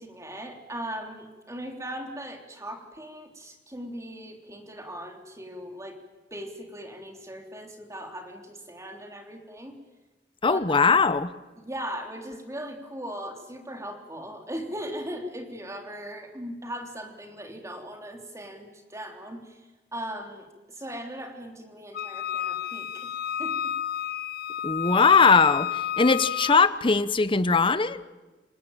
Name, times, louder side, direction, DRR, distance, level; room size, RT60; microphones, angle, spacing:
voice 1, 0.0-6.0 6.3-9.7 10.5-10.9 11.6-23.7, equal, 15° right, 3 dB, 3.3 m, -39 dB
voice 2, 10.4-11.3 24.6-28.0, left 4 dB, 30° left, 14 dB, 0.9 m, -20 dB
Wind instrument woodwind instrument, 21.9-26.7, left 10 dB, 60° left, 0.7 m, -31 dB
27.5 x 19.5 x 9.1 m, 1.2 s
head